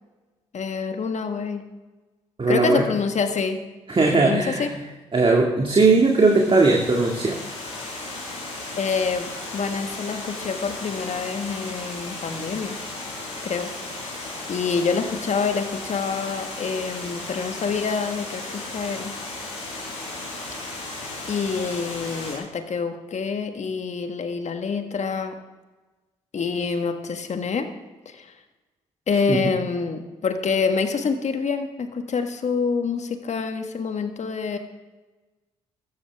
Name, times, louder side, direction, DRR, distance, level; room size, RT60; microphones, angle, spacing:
voice 1, 0.5-1.6 2.5-3.6 4.2-4.7 8.7-12.8 13.4-13.7 14.0-14.2 14.5-19.1 21.3-25.3 26.3-27.7 28.0-28.3 29.1-34.6, left 5 dB, 50° left, 6 dB, 1.7 m, -26 dB
voice 2, 2.4-2.9 3.9-4.8 5.1-7.4 29.3-29.4, right 3 dB, 35° right, 0 dB, 2.2 m, -19 dB
Water, 5.8-22.3, left 2 dB, 90° left, 3.7 m, -35 dB
16.5 x 13.5 x 3.6 m, 1.2 s
hypercardioid pair, 40°, 15 cm